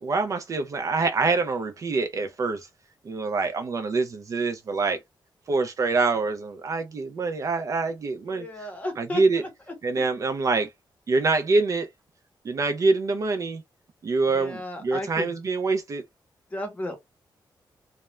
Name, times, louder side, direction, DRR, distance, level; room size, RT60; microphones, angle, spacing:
voice 1, 0.0-2.7 3.1-5.0 5.5-8.5 9.0-9.4 9.8-10.7 11.1-11.9 12.4-13.6 14.0-16.0, right 3 dB, 40° right, 0.4 m, -25 dB
voice 2, 8.3-9.7 14.3-15.3 16.5-17.0, left 1 dB, 20° left, 0.8 m, -33 dB
2.3 x 2.1 x 3.0 m
wide cardioid pair, 175°, 8 cm